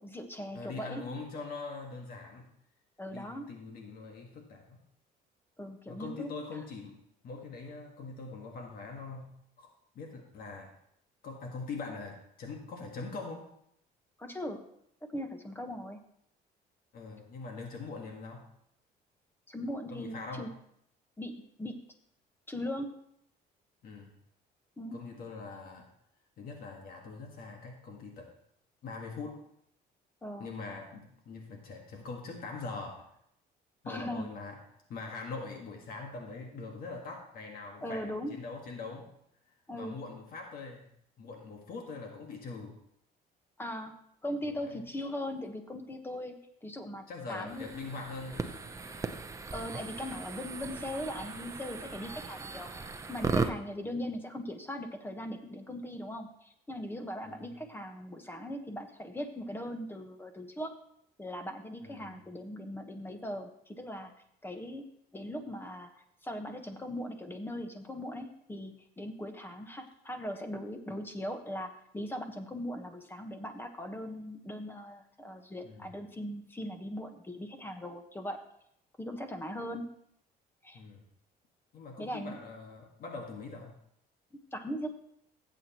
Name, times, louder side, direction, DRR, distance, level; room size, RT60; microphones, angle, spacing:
voice 1, 0.0-1.0 3.0-3.5 5.6-6.3 14.2-14.6 15.0-16.0 19.5-20.5 21.2-21.8 22.5-22.9 24.8-25.0 30.2-30.5 33.8-34.3 37.8-38.3 39.7-40.0 43.6-43.9 44.2-47.7 49.5-52.7 53.1-60.7 61.2-64.1 64.4-64.8 65.1-78.4 79.0-79.9 80.6-80.8 82.0-82.4 84.5-84.9, equal, 15° left, 6 dB, 1.3 m, -39 dB
voice 2, 0.5-2.5 3.1-4.8 5.9-7.0 7.2-10.7 11.2-13.5 16.9-18.5 19.9-20.5 23.8-24.1 24.9-25.9 26.4-28.3 28.8-29.4 30.4-33.1 33.8-34.6 34.9-39.1 39.7-40.9 41.2-42.8 44.4-44.8 47.1-48.6 53.8-54.0 57.2-57.5 61.8-62.2 75.6-75.9 80.7-81.0 81.7-83.7, left 4 dB, 60° left, 2 dB, 1.7 m, -43 dB
sound 1, 47.5-53.5, right 4 dB, 20° right, 0.7 m, -37 dB
15.5 x 8.0 x 3.0 m, 0.72 s
cardioid pair, 110°, 17 cm